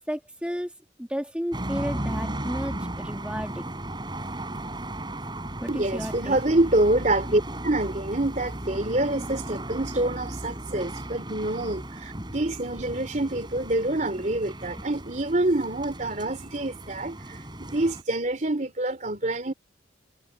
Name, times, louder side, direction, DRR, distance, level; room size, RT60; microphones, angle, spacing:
voice 1, 0.1-0.7 1.0-3.7 5.6-6.4 11.3-11.4, equal, 5° right, 1.8 m, -33 dB
sound 1, 1.5-18.0, right 1 dB, 25° right, 5.4 m, -36 dB
voice 2, 5.7-19.5, right 1 dB, 45° right, 3.2 m, -26 dB
head